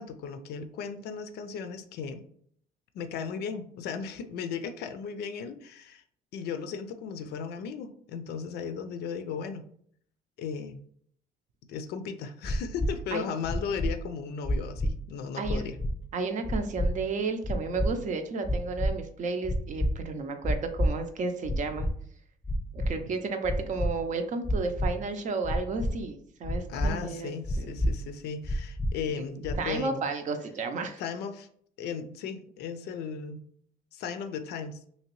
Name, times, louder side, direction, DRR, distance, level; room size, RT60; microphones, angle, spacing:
voice 1, 0.0-2.2 2.9-6.0 6.3-9.7 10.4-10.8 11.7-15.8 26.7-30.0 31.0-31.5 31.8-33.4 33.9-34.8, left 6 dB, 75° left, 9 dB, 0.4 m, -36 dB
sound 1, 12.4-12.9 13.4-13.9 14.4-14.9 15.4-15.9 16.4-16.9 17.4-17.9 18.4-18.9 19.4-19.9 20.4-20.9 21.4-21.9 22.4-22.9 23.4-23.9 24.4-24.9 25.4-25.9 26.4-26.9 27.4-27.9 28.4-28.9 29.4-29.8, equal, 10° left, 0.7 m, -27 dB
voice 2, 16.1-21.9 22.7-27.7 29.6-31.0, right 4 dB, 45° right, 7 dB, 0.5 m, -32 dB
2.9 x 2.8 x 3.0 m, 0.64 s
cardioid pair, 110°, 17 cm